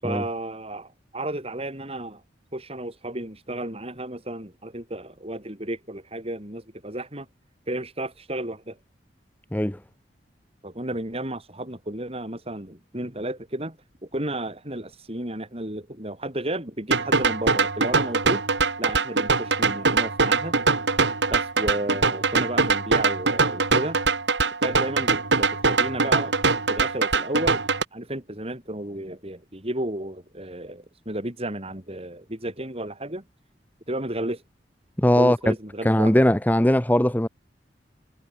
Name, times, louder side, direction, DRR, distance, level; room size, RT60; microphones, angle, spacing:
voice 1, 0.0-2.2 2.5-7.3 7.7-8.8 10.6-13.8 14.0-18.4 18.8-20.6 21.3-24.0 24.6-26.3 26.7-27.6 27.9-33.2 33.9-34.4 35.2-36.1, right 1 dB, 35° right, 6.3 m, -32 dB
sound 1, 16.9-27.8, right 4 dB, 85° right, 2.8 m, -22 dB
voice 2, 35.0-35.5 35.8-37.3, left 1 dB, 10° left, 1.1 m, -20 dB
head